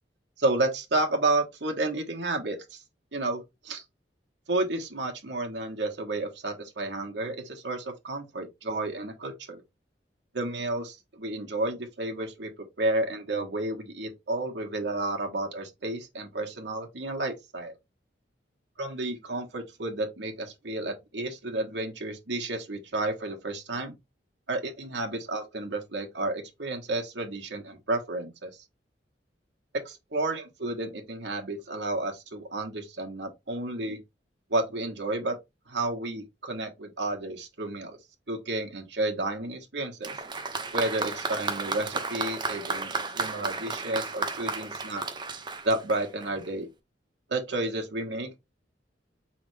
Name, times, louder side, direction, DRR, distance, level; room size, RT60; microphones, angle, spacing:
voice 1, 0.4-2.8 3.1-3.8 4.5-9.6 10.3-12.5 12.8-17.7 18.8-23.9 24.5-28.6 29.8-34.0 34.5-35.4 35.7-38.0 38.3-40.1 40.7-45.0 45.6-46.7 47.3-48.4, right 2 dB, 75° right, 1.3 m, -31 dB
Applause, 40.0-46.5, right 4 dB, 25° right, 0.6 m, -33 dB
4.5 x 3.5 x 3.2 m
head